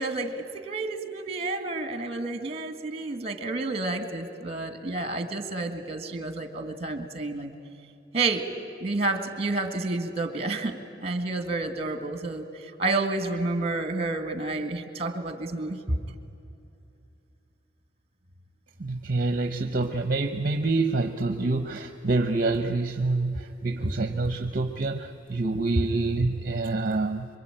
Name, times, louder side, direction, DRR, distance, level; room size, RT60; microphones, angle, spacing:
voice 1, 0.0-7.5 8.1-8.5 8.8-16.0 23.8-23.9, right 2 dB, 35° right, 8 dB, 1.9 m, -30 dB
voice 2, 18.8-27.3, right 3 dB, 50° right, 7 dB, 0.9 m, -27 dB
26.0 x 23.0 x 9.0 m, 2.7 s
head